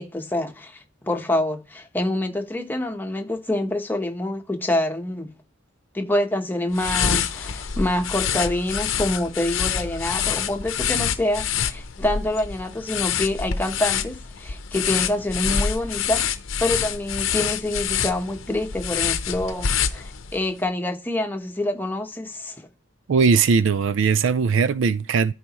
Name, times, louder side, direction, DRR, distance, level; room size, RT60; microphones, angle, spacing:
voice 1, 0.0-5.3 5.9-16.2 16.6-22.7, left 1 dB, 10° left, 1.0 m, -26 dB
sound 1, 6.7-20.4, left 7 dB, 70° left, 0.7 m, -26 dB
voice 2, 23.1-25.3, right 5 dB, 65° right, 0.4 m, -19 dB
13.5 x 4.9 x 3.0 m
head